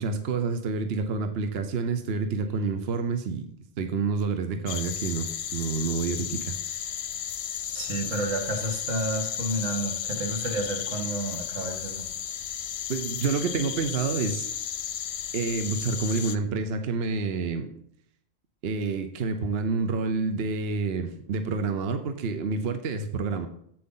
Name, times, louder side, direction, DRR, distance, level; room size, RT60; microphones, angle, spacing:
voice 1, 0.0-6.6 12.9-14.5 15.3-17.7 18.6-23.5, right 4 dB, 55° right, 8 dB, 0.9 m, -28 dB
sound 1, 4.7-16.4, left 9 dB, 65° left, 0.8 m, -34 dB
voice 2, 7.7-12.1, right 2 dB, 75° right, 2 dB, 1.9 m, -31 dB
7.8 x 7.7 x 3.8 m, 0.68 s
omnidirectional pair, 1.3 m